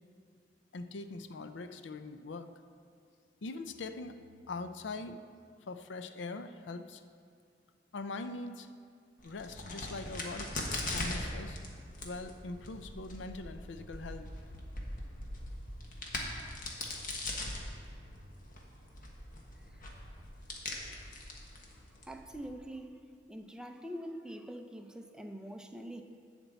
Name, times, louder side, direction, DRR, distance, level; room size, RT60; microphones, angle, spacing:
voice 1, 0.7-2.5 3.4-4.2 4.5-5.2 5.7-7.0 7.9-8.7 9.2-10.6 10.9-11.6 12.0-14.3, left 3 dB, 90° left, 9 dB, 0.5 m, -42 dB
Crack, 9.2-22.5, left 1 dB, 50° left, 1.4 m, -41 dB
voice 2, 22.1-23.0 23.3-26.0, equal, 5° right, 5 dB, 0.5 m, -44 dB
11.0 x 4.4 x 8.0 m, 2.2 s
head